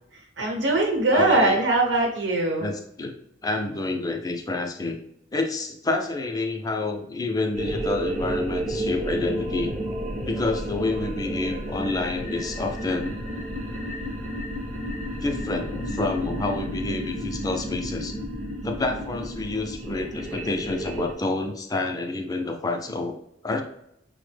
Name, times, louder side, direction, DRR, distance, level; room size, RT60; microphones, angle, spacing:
voice 1, 0.4-2.7, right 2 dB, 65° right, 0 dB, 0.9 m, -21 dB
voice 2, 1.1-1.6 2.6-3.1 3.4-5.0 5.3-9.7 10.3-13.2 15.2-18.2 18.6-23.2 23.4-23.6, left 2 dB, 20° left, 4 dB, 0.4 m, -28 dB
sound 1, 7.5-21.1, equal, 40° right, 0.6 m, -31 dB
5.3 x 2.0 x 3.2 m, 0.75 s
head